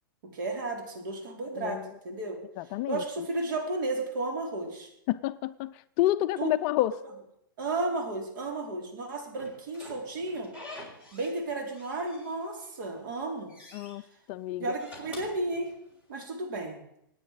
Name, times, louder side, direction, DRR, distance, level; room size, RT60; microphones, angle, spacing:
voice 1, 0.2-2.4 2.9-4.9 6.4-6.5 7.6-10.5 11.1-13.5 14.6-15.7 16.1-16.8, right 2 dB, 60° right, 4.5 m, -33 dB
voice 2, 1.6-1.9 2.6-3.0 5.1-7.0 13.7-14.0 14.3-14.7, left 14 dB, 35° left, 0.5 m, -29 dB
Slam / Squeak, 9.4-11.4 11.7-12.7 13.1-14.0 14.6-16.2, left 1 dB, 10° right, 4.2 m, -47 dB
25.5 x 9.6 x 5.0 m
hypercardioid pair, 145°, 12 cm